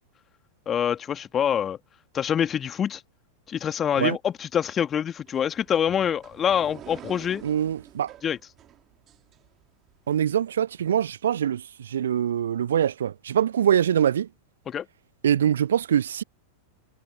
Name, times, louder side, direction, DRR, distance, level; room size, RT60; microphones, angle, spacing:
voice 1, 0.7-1.8 2.1-3.0 3.5-7.4 8.2-8.4 14.7-14.9, left 8 dB, 25° left, 2.2 m, -25 dB
sound 1, 5.3-9.9, right 11 dB, 30° right, 4.4 m, -48 dB
voice 2, 7.4-8.1 10.1-14.3 15.2-16.2, right 9 dB, 65° right, 0.5 m, -23 dB
figure-of-eight pair, 90°, 0 cm